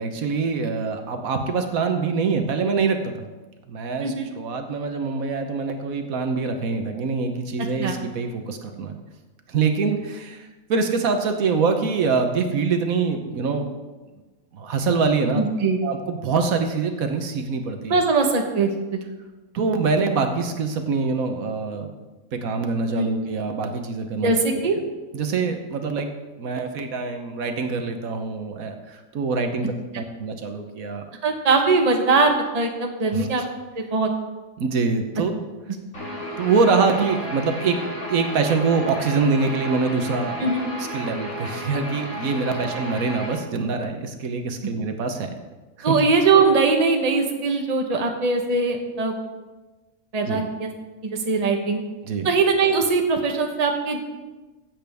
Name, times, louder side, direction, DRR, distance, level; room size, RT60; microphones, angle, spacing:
voice 1, 0.0-3.3 3.7-9.0 9.5-13.7 14.5-15.4 15.8-18.0 19.5-21.9 22.3-24.3 25.1-26.1 26.4-31.0 33.1-33.3 34.6-35.3 36.4-37.8 38.1-40.5 40.8-45.3 45.8-46.0 50.2-50.4 52.0-52.3, right 4 dB, 75° right, 6 dB, 1.4 m, -24 dB
voice 2, 15.3-15.8 17.9-19.0 22.9-23.1 24.2-24.8 31.2-33.4 33.7-34.1 40.4-40.6 45.8-49.1 50.1-50.7 51.0-51.8 52.2-54.0, right 4 dB, 30° right, 3 dB, 1.1 m, -21 dB
Guitar, 35.9-43.3, equal, 75° left, 3.2 m, -33 dB
15.5 x 7.7 x 3.5 m, 1.2 s
omnidirectional pair, 1.5 m